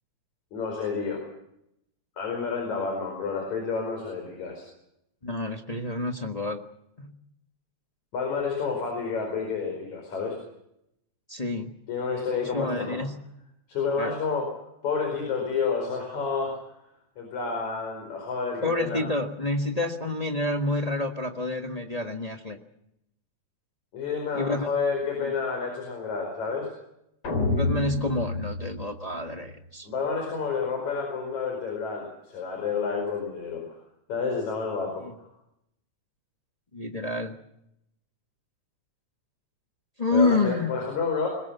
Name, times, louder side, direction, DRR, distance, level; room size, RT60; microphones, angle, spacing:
voice 1, 0.5-1.2 2.2-4.6 8.1-10.4 11.9-13.0 13.7-14.5 14.8-16.6 17.2-19.0 23.9-26.7 29.8-33.7 34.1-35.3 40.1-41.3, left 5 dB, 75° left, 2 dB, 6.2 m, -29 dB
voice 2, 5.2-6.6 7.0-7.1 11.3-11.7 12.4-13.2 14.0-14.2 18.6-22.6 24.3-24.7 25.2-25.3 27.5-29.9 35.0-35.1 36.7-37.4 40.0-40.7, left 2 dB, 30° left, 4 dB, 0.7 m, -28 dB
sound 1, 27.2-29.5, left 2 dB, 45° left, 4.6 m, -29 dB
22.5 x 20.5 x 7.1 m, 0.79 s
omnidirectional pair, 3.3 m